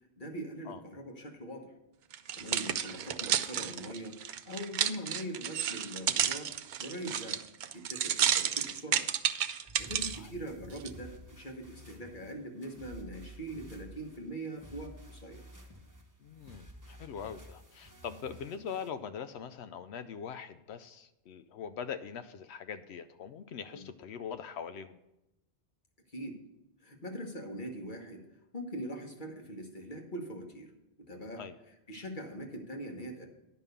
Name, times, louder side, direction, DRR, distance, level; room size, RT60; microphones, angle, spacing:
voice 1, 0.2-1.7 2.3-6.5 6.8-7.4 7.7-9.1 9.8-15.4 23.7-23.8 26.1-26.4 26.8-28.2 28.5-30.7 31.0-31.4 31.9-33.3, right 1 dB, 50° left, 2 dB, 1.5 m, -42 dB
sound 1, 2.1-10.2 10.8-10.9, right 9 dB, 60° right, 0.6 m, -31 dB
sound 2, 9.7-18.9, right 1 dB, 20° right, 1.1 m, -52 dB
voice 2, 16.2-25.0 31.4-31.6, left 7 dB, 80° left, 11 dB, 0.8 m, -42 dB
10.5 x 5.4 x 6.8 m, 0.90 s
omnidirectional pair, 1.1 m